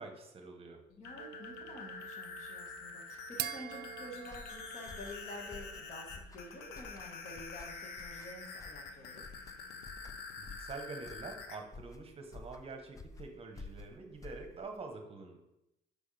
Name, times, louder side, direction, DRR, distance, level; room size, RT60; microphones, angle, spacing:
voice 1, 0.0-0.8 10.4-15.4, right 3 dB, 35° right, 4 dB, 0.9 m, -46 dB
sound 1, 0.9-11.6, left 4 dB, 75° left, 0.8 m, -47 dB
voice 2, 1.0-9.3, left 1 dB, 45° left, 0 dB, 1.6 m, -49 dB
sound 2, 1.2-6.0, right 12 dB, 65° right, 0.4 m, -46 dB
sound 3, 4.2-14.8, left 3 dB, 20° left, 0.4 m, -52 dB
6.3 x 5.1 x 3.3 m, 0.88 s
cardioid pair, 110°, 17 cm